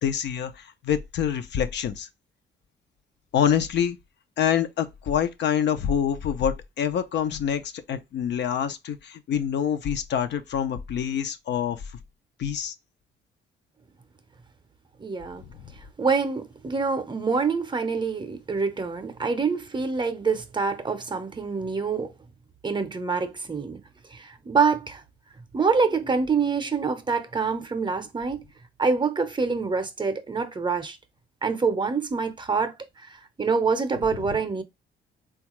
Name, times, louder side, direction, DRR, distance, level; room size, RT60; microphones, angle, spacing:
voice 1, 0.0-2.1 3.3-4.0 4.4-11.8 12.4-12.7 34.3-34.4, left 8 dB, 60° left, 0.5 m, -26 dB
voice 2, 15.0-15.4 16.0-22.1 22.6-23.8 24.1-25.0 25.5-28.5 28.8-31.0 31.4-32.7 33.4-34.6, right 5 dB, 25° right, 0.6 m, -26 dB
3.5 x 2.3 x 3.0 m
cardioid pair, 90°, 20 cm